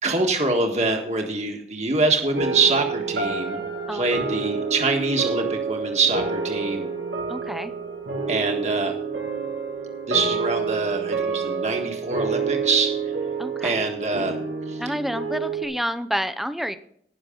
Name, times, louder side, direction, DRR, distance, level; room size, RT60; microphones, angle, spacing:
voice 1, 0.0-3.6 3.9-6.9 8.3-8.9 10.1-12.9 13.6-14.4 14.7-14.8, right 3 dB, 40° right, 2 dB, 1.6 m, -24 dB
sound 1, 2.4-15.7, right 5 dB, 90° right, 2.5 m, -28 dB
voice 2, 7.3-7.7 13.4-13.8 14.8-16.8, equal, ahead, 12 dB, 0.6 m, -29 dB
19.0 x 6.5 x 3.8 m, 0.67 s
head